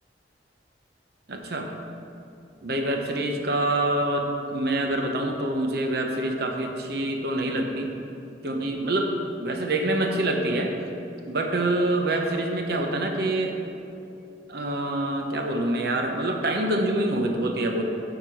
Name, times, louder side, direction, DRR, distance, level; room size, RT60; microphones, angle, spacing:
voice 1, 1.3-1.7 2.6-7.9 8.4-9.1 9.4-10.7 11.3-13.5 14.5-17.8, right 1 dB, 65° right, 3 dB, 1.0 m, -26 dB
10.5 x 5.9 x 4.7 m, 2.8 s
head